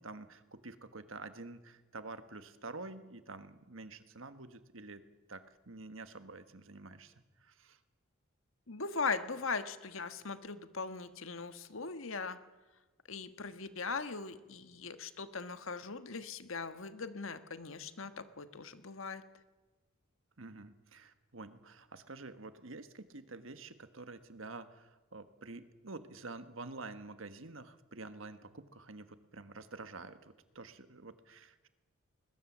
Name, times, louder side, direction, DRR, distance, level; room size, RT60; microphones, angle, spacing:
voice 1, 0.0-5.0 5.3-7.8 20.4-31.7, right 3 dB, 65° right, 10 dB, 1.5 m, -48 dB
voice 2, 8.7-12.4 13.1-19.2, left 4 dB, 70° left, 10 dB, 1.5 m, -39 dB
21.5 x 21.0 x 7.4 m, 1.2 s
head